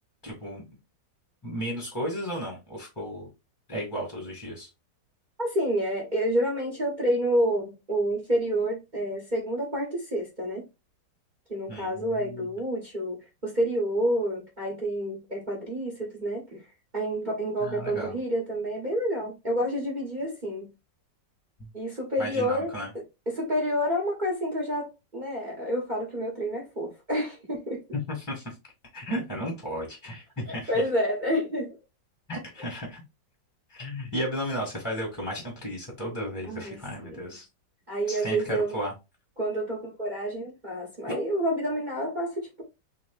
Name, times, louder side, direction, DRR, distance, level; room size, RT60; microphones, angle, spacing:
voice 1, 0.2-0.6 1.4-3.3 3.7-4.7 11.7-12.4 17.6-18.2 22.2-22.9 28.2-28.5 28.9-30.7 32.3-33.0 33.7-37.4 38.1-38.9, equal, 10° left, 1.4 m, -34 dB
voice 2, 5.4-10.6 11.5-16.6 16.9-20.7 21.7-22.7 23.3-27.8 30.4-31.7 32.6-32.7 36.4-37.3 37.9-38.8 39.4-42.6, equal, 30° right, 1.1 m, -29 dB
3.7 x 3.0 x 3.7 m
omnidirectional pair, 2.0 m